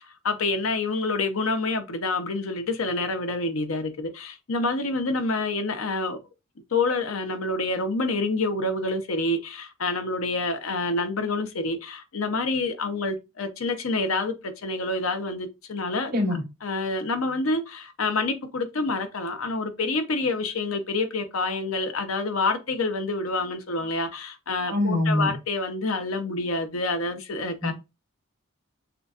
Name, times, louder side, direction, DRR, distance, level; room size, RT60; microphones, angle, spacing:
voice 1, 0.0-6.2 6.7-16.1 16.6-27.7, left 3 dB, 80° left, 0.7 m, -27 dB
voice 2, 16.1-16.4 24.7-25.3 27.6-27.7, left 1 dB, 45° right, 1.9 m, -23 dB
6.6 x 2.3 x 2.4 m
head